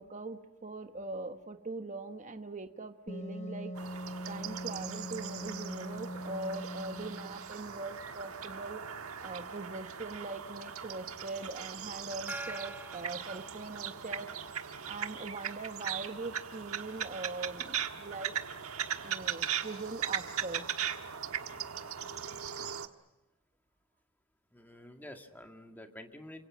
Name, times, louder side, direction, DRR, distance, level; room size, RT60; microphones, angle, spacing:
voice 1, 0.0-3.7 4.3-14.3 14.8-18.3 19.0-20.7, right 3 dB, 35° right, 7 dB, 1.2 m, -42 dB
Wind instrument woodwind instrument, 3.1-7.5, equal, 30° left, 0.9 m, -42 dB
sound 1, 3.7-22.9, right 8 dB, 70° right, 1.4 m, -39 dB
Gong, 12.3-14.3, right 1 dB, 10° right, 1.8 m, -45 dB
voice 2, 24.5-26.5, left 1 dB, 10° left, 5 dB, 2.0 m, -49 dB
29.5 x 25.5 x 6.4 m, 0.98 s
head